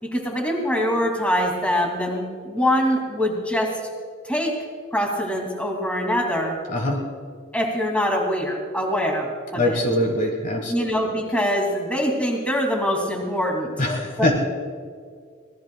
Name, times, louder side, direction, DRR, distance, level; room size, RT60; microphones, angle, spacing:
voice 1, 0.0-3.8 4.2-4.6 4.9-6.6 7.5-9.8 10.7-13.7 14.2-14.4, equal, 5° left, 1 dB, 2.4 m, -24 dB
voice 2, 6.7-7.0 9.5-10.7 13.8-14.3, left 1 dB, 40° left, 2 dB, 1.5 m, -22 dB
25.0 x 18.5 x 2.3 m, 2.1 s
head